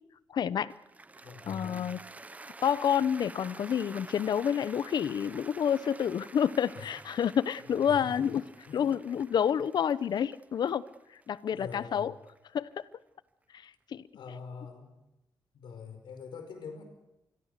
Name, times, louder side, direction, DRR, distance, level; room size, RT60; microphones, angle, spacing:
voice 1, 0.3-0.7 1.5-2.0 2.6-8.4 8.7-10.8 11.3-12.1 12.5-12.8 13.6-14.1, left 8 dB, 65° left, 17 dB, 0.8 m, -29 dB
Cheering / Applause, 0.7-12.9, right 3 dB, 20° right, 0.8 m, -50 dB
voice 2, 1.2-1.8 6.7-6.9 7.9-8.3 8.7-8.8 11.5-12.1 14.1-14.9 15.5-16.8, left 5 dB, 90° left, 7 dB, 4.9 m, -44 dB
27.5 x 22.0 x 6.7 m, 0.94 s
wide cardioid pair, 130°, 8 cm